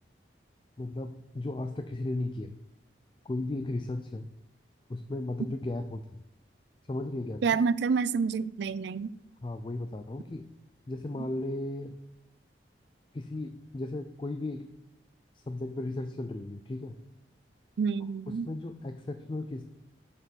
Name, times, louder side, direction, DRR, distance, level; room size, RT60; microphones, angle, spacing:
voice 1, 0.8-2.6 3.2-4.3 4.9-6.2 6.9-7.4 9.4-10.5 10.9-12.0 13.1-14.7 15.3-17.0 18.3-19.6, left 2 dB, 25° left, 0.4 m, -35 dB
voice 2, 7.4-9.1 17.8-18.5, right 5 dB, 70° right, 0.4 m, -28 dB
7.0 x 6.7 x 6.1 m
head